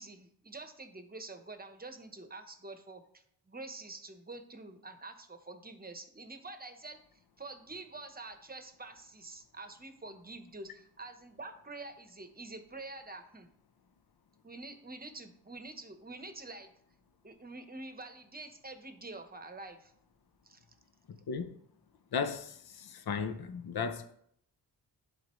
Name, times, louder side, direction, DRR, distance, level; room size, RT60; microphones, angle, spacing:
voice 1, 0.0-3.0 3.4-13.5 14.4-16.7 17.2-19.9 20.4-20.6, right 2 dB, 20° right, 1.0 m, -47 dB
voice 2, 21.1-21.5 22.1-24.1, left 5 dB, 55° left, 0.8 m, -36 dB
11.0 x 3.9 x 3.1 m
cardioid pair, 55°, 44 cm